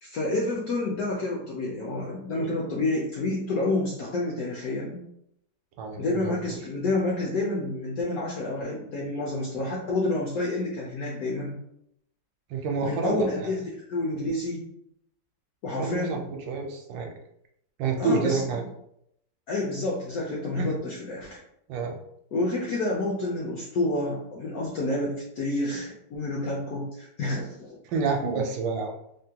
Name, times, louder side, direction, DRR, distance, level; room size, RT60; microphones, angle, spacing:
voice 1, 0.0-5.0 6.0-11.6 12.8-14.6 15.6-16.2 18.0-18.4 19.5-21.4 22.3-27.8, left 2 dB, 70° left, -3 dB, 0.8 m, -29 dB
voice 2, 5.8-6.6 12.5-13.5 15.8-17.1 17.8-18.6 20.6-20.7 21.7-21.9 27.8-28.9, right 4 dB, 80° right, 2 dB, 1.3 m, -29 dB
3.5 x 2.1 x 2.7 m, 0.75 s
omnidirectional pair, 2.1 m